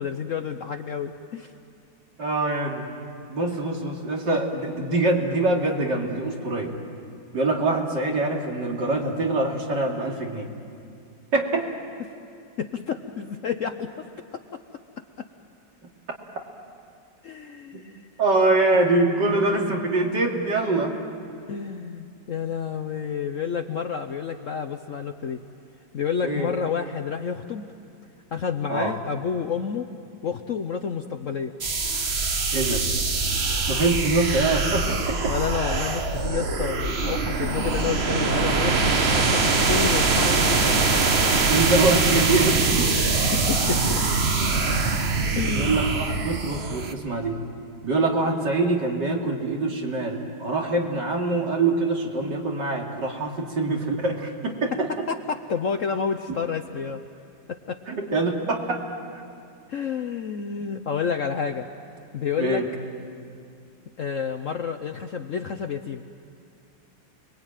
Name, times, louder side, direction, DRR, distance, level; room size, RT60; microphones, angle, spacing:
voice 1, 0.0-1.5 12.0-12.1 12.6-14.1 14.3-14.4 17.2-18.1 18.7-19.4 19.7-19.8 21.5-25.4 25.9-27.7 28.3-29.9 30.2-31.5 35.3-40.8 43.3-44.1 45.3-46.0 55.1-57.0 57.5-57.8 59.7-61.7 62.1-62.6 64.0-66.0, left 6 dB, 55° left, 6 dB, 1.0 m, -30 dB
voice 2, 2.2-2.9 3.3-6.7 7.3-10.5 11.3-11.7 17.7-17.8 18.2-21.0 26.2-26.5 28.7-28.9 32.5-32.8 33.7-35.2 41.5-42.9 45.5-47.4 47.8-54.9 57.9-58.8 62.4-62.7, right 2 dB, 70° right, 0 dB, 3.2 m, -24 dB
sound 1, 31.6-46.9, right 3 dB, 40° right, 1.3 m, -23 dB
30.0 x 21.5 x 9.1 m, 2.4 s
omnidirectional pair, 2.0 m